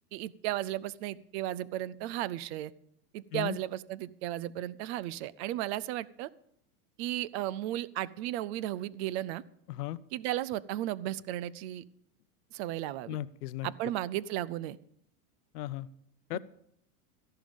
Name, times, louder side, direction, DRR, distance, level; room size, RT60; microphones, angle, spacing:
voice 1, 0.1-2.7 3.1-6.3 7.0-9.4 10.1-11.8 12.5-13.2 13.6-14.8 16.3-16.4, right 14 dB, 45° right, 21 dB, 0.5 m, -35 dB
voice 2, 9.7-10.0 13.1-13.7 15.5-15.9 16.3-16.4, left 14 dB, 85° left, 16 dB, 0.8 m, -36 dB
13.5 x 11.5 x 5.2 m, 0.69 s
supercardioid pair, 145°, 45 cm